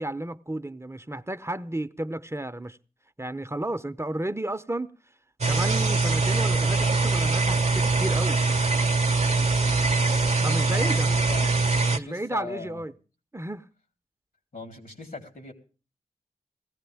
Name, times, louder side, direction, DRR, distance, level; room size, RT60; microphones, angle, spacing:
voice 1, 0.0-2.8 3.2-4.9 5.5-8.4 10.4-11.1 11.9-12.9 13.3-13.6, right 1 dB, 20° right, 0.7 m, -32 dB
sound 1, 5.4-12.0, right 3 dB, 50° right, 0.8 m, -23 dB
voice 2, 10.7-12.8 14.5-15.5, left 3 dB, 75° left, 3.6 m, -40 dB
18.0 x 15.5 x 3.5 m
cardioid pair, 50°, 15 cm